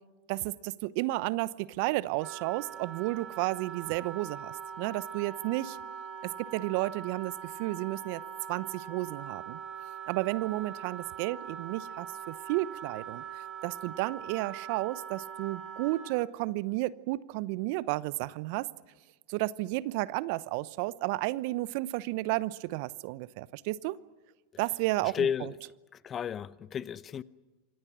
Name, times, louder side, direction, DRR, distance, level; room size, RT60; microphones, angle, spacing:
voice 1, 0.3-5.8 6.2-8.2 8.5-9.6 10.1-13.2 13.6-18.7 19.3-24.0 24.6-25.5, right 19 dB, 55° right, 0.8 m, -32 dB
Wind instrument woodwind instrument, 2.2-16.3, right 7 dB, 35° right, 3.0 m, -42 dB
voice 2, 25.0-25.6 25.9-27.2, left 8 dB, 30° left, 0.8 m, -33 dB
27.5 x 25.0 x 6.2 m
hypercardioid pair, 90°, 0 cm